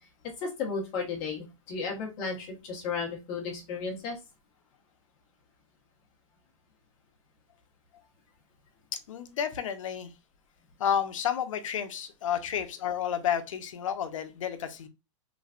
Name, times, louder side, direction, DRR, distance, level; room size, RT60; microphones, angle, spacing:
voice 1, 0.4-4.2, left 4 dB, 25° left, 1.0 m, -34 dB
voice 2, 9.1-10.1 10.8-14.9, left 9 dB, 70° left, 0.7 m, -31 dB
3.3 x 3.1 x 2.4 m
supercardioid pair, 175°, 17 cm